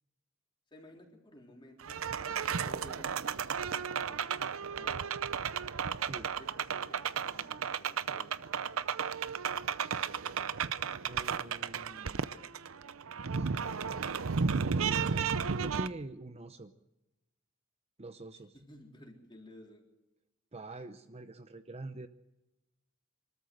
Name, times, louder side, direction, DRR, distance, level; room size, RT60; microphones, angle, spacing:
voice 1, 0.7-2.0 2.5-4.5 4.8-5.1 6.0-8.5 18.3-19.8, left 1 dB, 20° left, 1 dB, 3.8 m, -55 dB
sound 1, 1.8-15.9, right 6 dB, 70° right, 0.7 m, -34 dB
voice 2, 11.0-12.2 13.3-13.5 14.5-16.7 18.0-18.5 20.5-22.1, right 2 dB, 30° right, 9 dB, 0.8 m, -45 dB
24.5 x 13.5 x 7.8 m, 0.98 s
head